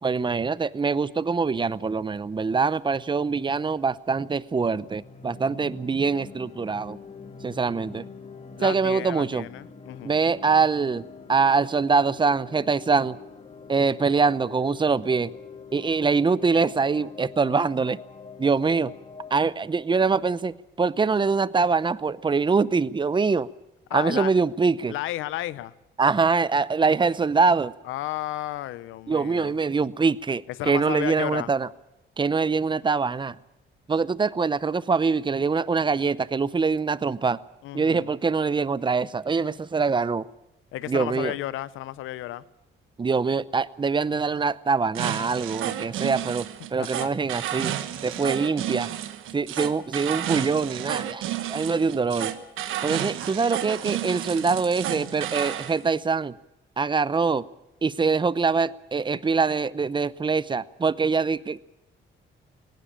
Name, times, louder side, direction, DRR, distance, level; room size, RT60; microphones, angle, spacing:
voice 1, 0.0-7.0 7.4-8.0 8.6-9.5 10.0-11.0 11.3-13.2 13.7-15.3 15.7-18.0 18.4-18.9 19.3-23.5 23.9-24.9 26.0-27.7 29.1-31.7 32.2-33.3 33.9-37.4 37.7-40.2 40.9-41.3 43.0-47.7 48.0-48.9 49.3-51.2 51.5-52.3 52.8-56.3 56.8-57.4 57.8-61.6, right 4 dB, 25° right, 18 dB, 0.7 m, -24 dB
sound 1, 4.5-19.5, left 4 dB, 30° left, 1.4 m, -45 dB
voice 2, 8.6-10.2 23.9-24.3 24.9-25.7 27.8-29.6 30.5-31.5 37.6-38.1 40.7-42.4 46.8-47.1, left 15 dB, 90° left, 18 dB, 0.8 m, -33 dB
sound 2, 44.9-55.8, right 11 dB, 90° right, 1.3 m, -31 dB
19.0 x 17.0 x 8.8 m, 0.90 s
cardioid pair, 90°, 20 cm